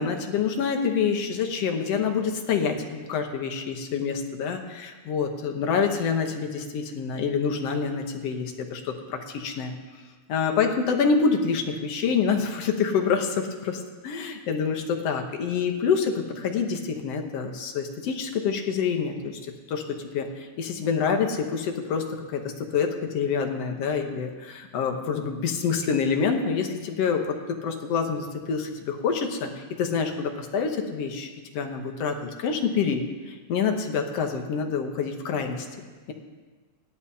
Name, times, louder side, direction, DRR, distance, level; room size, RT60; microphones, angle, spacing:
voice 1, 0.0-9.7 10.3-19.4 19.7-19.8 20.1-22.1 22.3-35.7, left 6 dB, 65° left, 4 dB, 1.9 m, -27 dB
18.5 x 12.0 x 2.8 m, 1.4 s
omnidirectional pair, 3.4 m